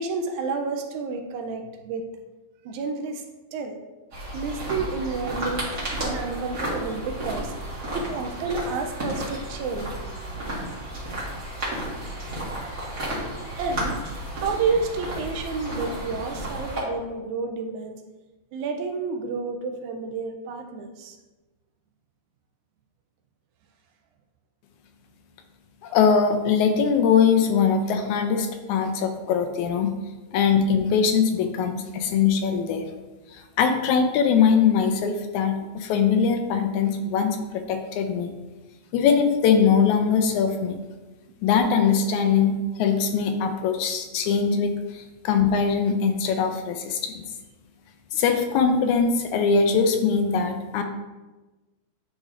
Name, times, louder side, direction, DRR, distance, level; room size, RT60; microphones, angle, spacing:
voice 1, 0.0-2.1 2.7-3.2 3.5-3.8 4.3-5.7 6.0-7.6 7.9-10.0 12.8-12.9 13.6-14.0 14.3-18.0 18.5-21.2, right 4 dB, 80° right, 4 dB, 1.9 m, -30 dB
sound 1, 4.1-16.8, right 1 dB, 40° right, 1.4 m, -32 dB
voice 2, 25.8-29.9 30.3-32.9 33.3-38.3 38.9-40.8 41.4-47.3 48.1-50.8, left 6 dB, 80° left, 5 dB, 1.9 m, -22 dB
9.8 x 4.1 x 2.5 m, 1.2 s
omnidirectional pair, 3.5 m